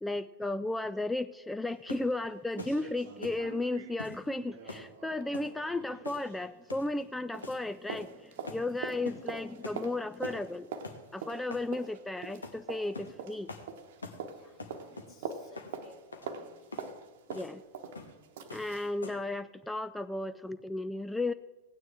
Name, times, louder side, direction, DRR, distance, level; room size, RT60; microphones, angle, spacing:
voice 1, 0.0-10.7 11.1-13.5 17.3-17.6 18.5-21.3, left 2 dB, 5° left, 12 dB, 0.3 m, -34 dB
sound 1, 1.7-1.8 2.1-2.2 2.5-7.1 7.3-19.0 19.3-19.4, right 6 dB, 55° right, 1.0 m, -45 dB
sound 2, 1.9-2.1 2.6-2.8 3.2-3.4 4.0-4.2 4.7-4.9 5.3-5.5 6.0-6.4 6.7-6.9 7.4-7.6 7.9-8.2 8.5-8.7 9.1-9.2 9.6-9.8 10.2-10.5 10.8-11.0 11.5-11.7 12.4-12.6 12.9-13.2 13.5-13.7 14.0-14.2 14.6-15.1 15.6-15.7 16.1-16.3 16.7-16.9 17.3-17.5 18.0-18.2 18.5-18.7 19.0-19.3, left 3 dB, 75° left, 1.2 m, -44 dB
voice 2, 14.1-16.7 17.8-18.1, left 3 dB, 35° left, 2 dB, 2.2 m, -60 dB
17.0 x 9.3 x 3.6 m, 1.2 s
figure-of-eight pair, 90°, 0 cm